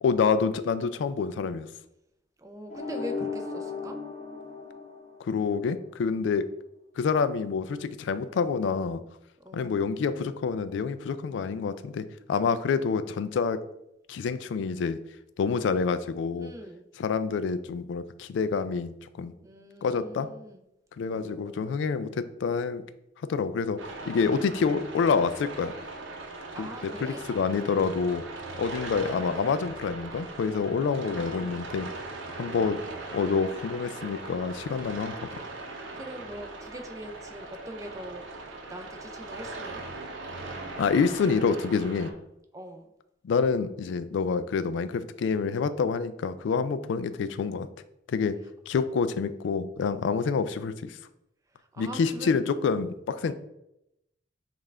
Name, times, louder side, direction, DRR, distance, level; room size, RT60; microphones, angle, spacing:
voice 1, 0.0-1.7 5.2-6.5 7.0-9.0 9.5-13.6 14.1-15.0 15.4-16.5 17.0-19.3 19.8-20.3 21.0-22.8 23.3-23.8 24.1-25.7 26.6-26.7 27.0-28.2 28.6-31.9 32.3-32.8 33.1-35.4 40.8-42.1 43.2-47.7 48.1-48.4 48.7-51.0 51.8-53.3, left 5 dB, 70° left, 13 dB, 0.3 m, -27 dB
voice 2, 2.4-4.0 9.4-9.7 16.4-16.9 19.4-20.6 21.1-21.8 26.5-27.3 36.0-38.3 38.7-39.9 42.5-42.9 51.6-52.4 53.2-53.3, equal, 15° right, 5 dB, 0.4 m, -42 dB
sound 1, 2.7-5.7, left 4 dB, 35° left, 0.8 m, -36 dB
sound 2, 23.8-42.1, right 2 dB, 80° right, 0.7 m, -40 dB
5.4 x 2.4 x 3.3 m, 0.83 s
head